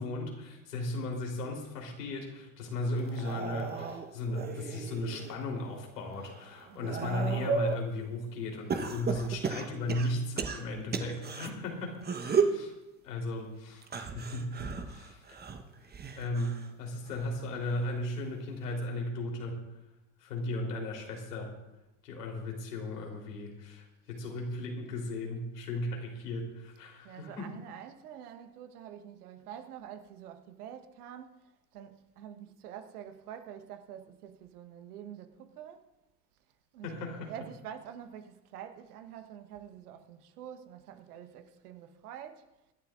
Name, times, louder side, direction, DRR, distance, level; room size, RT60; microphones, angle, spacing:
voice 1, 0.0-12.7 13.0-15.4 16.2-19.7 20.2-21.5 22.0-27.5 36.8-37.3, left 1 dB, 75° left, 3.8 m, -36 dB
sound 1, 3.0-5.4 5.9-7.8 8.7-11.5 12.0-12.6 13.8-16.7 17.0-17.5 18.6-18.7, right 5 dB, 20° right, 1.2 m, -34 dB
voice 2, 6.6-7.1 24.2-24.3 27.0-35.9 36.7-42.5, right 9 dB, 65° right, 1.3 m, -47 dB
25.5 x 11.5 x 2.6 m
hypercardioid pair, 80°, 48 cm